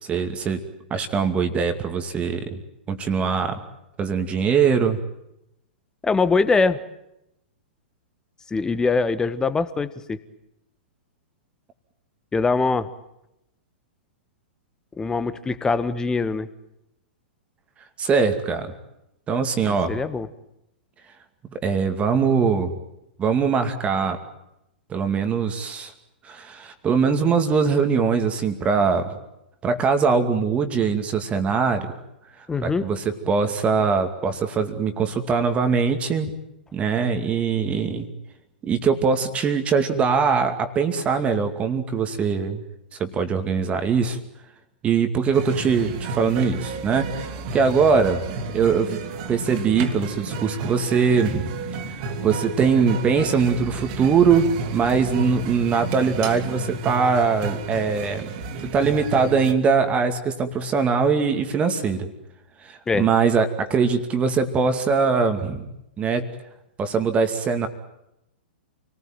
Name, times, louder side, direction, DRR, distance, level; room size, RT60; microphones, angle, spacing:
voice 1, 0.0-0.6 0.9-2.6 2.9-3.6 4.0-5.0 18.0-18.7 19.3-20.0 21.6-22.7 23.2-24.2 24.9-25.9 26.2-29.2 29.6-31.9 32.6-36.3 36.7-38.1 38.6-42.6 43.0-44.2 44.8-49.0 49.3-51.5 51.9-58.3 58.7-62.1 62.6-65.7 66.0-66.2 66.8-67.7, right 5 dB, 20° right, 7 dB, 2.4 m, -22 dB
voice 2, 6.0-6.8 8.5-10.2 12.3-12.9 15.0-16.5 19.9-20.3 32.5-32.9 62.9-63.1, left 4 dB, 10° left, 13 dB, 1.5 m, -22 dB
sound 1, 45.3-59.5, right 3 dB, 45° right, 3.1 m, -32 dB
28.5 x 19.5 x 9.1 m, 0.85 s
figure-of-eight pair, 110°, 6 cm